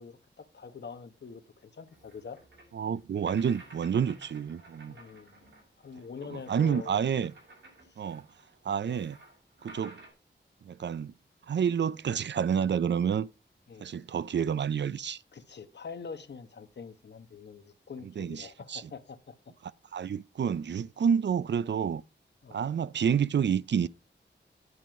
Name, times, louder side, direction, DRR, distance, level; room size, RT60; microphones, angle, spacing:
voice 1, 0.0-2.4 4.9-5.5 5.8-7.1 7.9-8.0 8.9-9.0 13.7-13.9 15.3-19.3 22.4-22.6, left 5 dB, 65° left, 1.1 m, -45 dB
sound 1, 1.9-10.1, right 2 dB, 85° right, 6.6 m, -54 dB
voice 2, 2.7-5.0 6.3-7.3 8.0-8.2 8.6-9.2 9.6-10.0 10.7-11.1 11.5-13.3 13.8-15.2 18.2-18.8 19.9-22.0 22.5-23.9, right 7 dB, 65° right, 0.5 m, -29 dB
9.6 x 7.6 x 4.8 m
wide cardioid pair, 80°, 19 cm